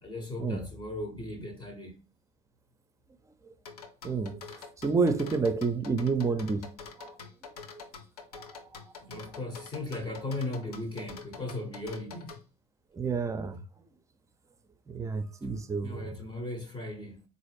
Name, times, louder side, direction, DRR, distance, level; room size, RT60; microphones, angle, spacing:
voice 1, 0.0-2.0 9.0-12.4 15.8-17.2, left 2 dB, 25° left, 0.8 m, -37 dB
sound 1, 3.7-12.4, left 5 dB, 80° left, 0.5 m, -45 dB
voice 2, 4.0-4.4 4.8-7.1 8.3-8.4 12.9-13.6 14.9-16.1, right 4 dB, 15° right, 0.5 m, -29 dB
3.9 x 2.4 x 3.2 m
figure-of-eight pair, 60°, 19 cm